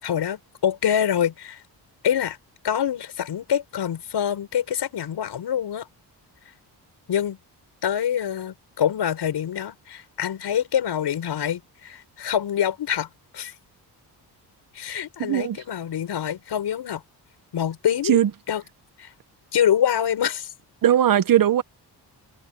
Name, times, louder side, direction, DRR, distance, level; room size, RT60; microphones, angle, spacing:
voice 1, 0.0-1.6 2.0-2.4 2.6-5.9 7.1-7.4 7.8-13.1 13.3-13.5 14.7-17.0 17.5-18.2 18.5-18.6 19.0-19.1 19.5-20.5, left 9 dB, 75° left, 6.1 m, -25 dB
voice 2, 15.2-15.6 18.0-18.3 20.8-21.6, right 11 dB, 55° right, 0.8 m, -19 dB
wide cardioid pair, 130°, 41 cm